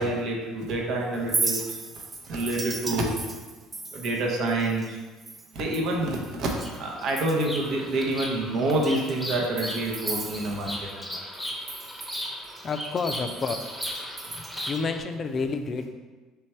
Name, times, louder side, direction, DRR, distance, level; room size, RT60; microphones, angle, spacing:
voice 1, 0.0-1.8 2.2-3.1 3.9-5.0 5.5-6.5 6.8-11.0, right 2 dB, 60° right, 0 dB, 0.7 m, -27 dB
Chink clink, 1.1-6.8 7.1-7.7 8.1-8.2 8.7-11.1 11.3-14.8, right 3 dB, 30° right, 0.4 m, -36 dB
Bird vocalization bird call bird song, 6.5-15.0, equal, 5° left, 0.9 m, -37 dB
voice 2, 12.6-13.5 14.3-15.9, left 4 dB, 40° left, 7 dB, 0.4 m, -30 dB
3.4 x 3.2 x 4.2 m, 1.3 s
hypercardioid pair, 65°, 0 cm